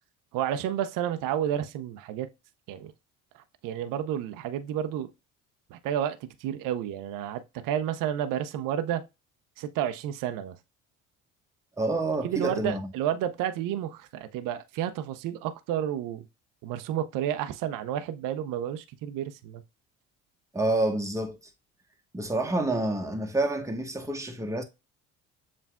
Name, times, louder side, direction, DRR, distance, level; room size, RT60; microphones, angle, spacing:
voice 1, 0.3-2.3 2.7-2.9 3.6-5.1 5.7-9.0 9.6-10.6 12.2-16.2 16.6-19.6, right 10 dB, 60° right, 0.6 m, -31 dB
voice 2, 11.8-12.8 20.5-21.4 22.1-24.6, right 2 dB, 10° right, 1.0 m, -28 dB
7.3 x 2.5 x 2.2 m
hypercardioid pair, 60°, 37 cm